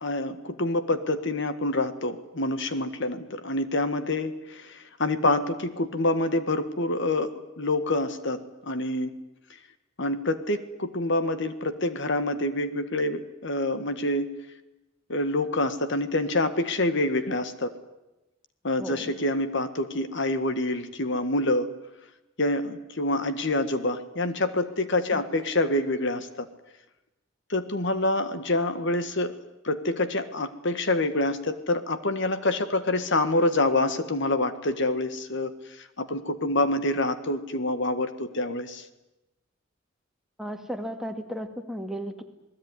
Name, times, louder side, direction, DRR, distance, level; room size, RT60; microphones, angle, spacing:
voice 1, 0.0-9.2 10.0-14.3 15.1-17.7 18.6-21.7 22.4-26.5 27.5-29.4 29.6-35.5 35.8-38.8, left 2 dB, 65° left, 10 dB, 1.7 m, -27 dB
voice 2, 18.8-19.1 25.1-25.3 40.4-42.2, equal, ahead, 4 dB, 2.4 m, -35 dB
28.5 x 19.5 x 9.9 m, 0.96 s
head